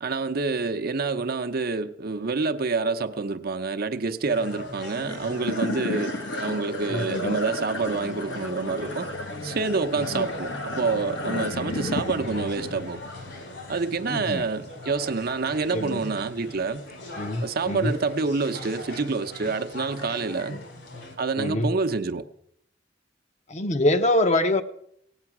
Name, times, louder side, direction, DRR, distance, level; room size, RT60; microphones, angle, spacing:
voice 1, 0.0-9.1 9.4-13.0 13.7-16.8 17.4-20.6 21.2-22.3, right 4 dB, 55° right, 0.7 m, -27 dB
sound 1, 4.2-21.2, left 1 dB, 70° left, 3.2 m, -41 dB
sound 2, 5.0-15.5, left 2 dB, 85° left, 1.3 m, -34 dB
voice 2, 6.9-7.4 10.0-10.3 14.1-14.4 15.7-16.0 17.2-18.0 20.5-20.6 21.4-21.7 23.5-24.6, left 1 dB, 40° left, 0.8 m, -25 dB
17.0 x 8.8 x 6.0 m
head